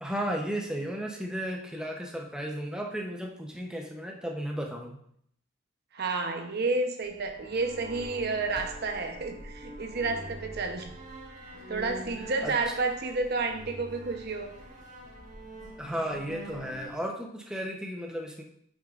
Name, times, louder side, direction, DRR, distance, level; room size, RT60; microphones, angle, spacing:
voice 1, 0.0-5.0 12.4-12.6 15.8-18.4, equal, 5° right, 0 dB, 0.7 m, -34 dB
voice 2, 5.9-10.9 11.7-14.5, right 3 dB, 55° right, 5 dB, 0.8 m, -30 dB
sound 1, 7.0-17.0, equal, 40° right, 1.6 m, -44 dB
9.0 x 6.1 x 2.5 m, 0.68 s
head